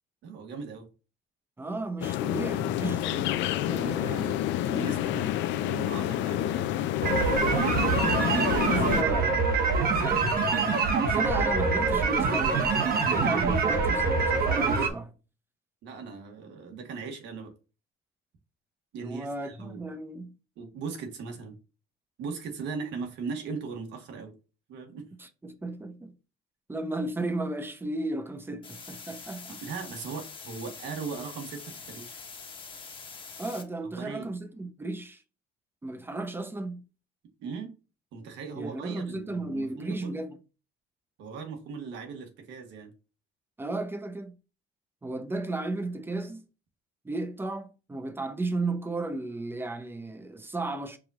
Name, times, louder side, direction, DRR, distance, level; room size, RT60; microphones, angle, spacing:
voice 1, 0.2-0.9 3.6-6.6 15.8-17.5 18.9-19.8 20.6-21.5 22.2-24.3 24.7-25.1 29.5-32.2 34.0-34.3 37.4-37.7 38.1-40.1 41.2-42.9, right 5 dB, 85° right, 1.3 m, -38 dB
voice 2, 1.6-4.2 8.6-10.8 11.0-15.1 19.0-20.3 25.2-26.1 26.7-29.6 33.4-35.2 35.8-36.8 38.6-40.4 43.6-44.3 45.0-46.4 47.0-51.0, right 2 dB, 10° right, 0.6 m, -34 dB
sound 1, 2.0-9.0, left 13 dB, 90° left, 0.4 m, -28 dB
sound 2, 7.0-14.9, right 4 dB, 55° right, 1.1 m, -25 dB
sound 3, 28.6-33.6, left 5 dB, 25° left, 1.0 m, -44 dB
4.8 x 2.4 x 4.0 m
cardioid pair, 130°, 18 cm